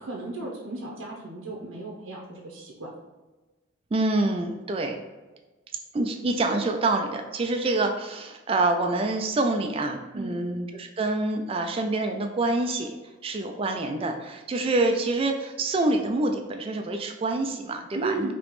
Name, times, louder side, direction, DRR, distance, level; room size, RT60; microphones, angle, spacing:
voice 1, 0.0-2.9 10.1-10.4 17.9-18.3, right 2 dB, 90° right, -2 dB, 0.8 m, -34 dB
voice 2, 3.9-5.0 5.9-12.9 13.2-18.3, right 2 dB, 30° right, 5 dB, 0.3 m, -26 dB
5.0 x 2.9 x 3.0 m, 1.2 s
head